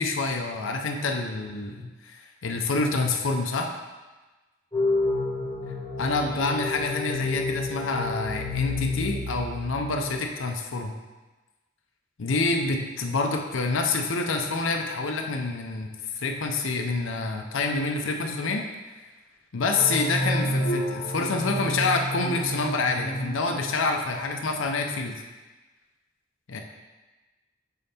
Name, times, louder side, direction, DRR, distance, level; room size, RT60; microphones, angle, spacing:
voice 1, 0.0-3.7 6.0-10.9 12.2-18.7 19.5-25.1 26.5-26.6, left 3 dB, 75° left, 3 dB, 0.6 m, -27 dB
sound 1, 4.7-10.1, left 3 dB, 15° left, 2.0 m, -30 dB
sound 2, 19.8-24.3, right 1 dB, 35° left, 0.6 m, -30 dB
5.2 x 4.6 x 4.3 m, 1.2 s
head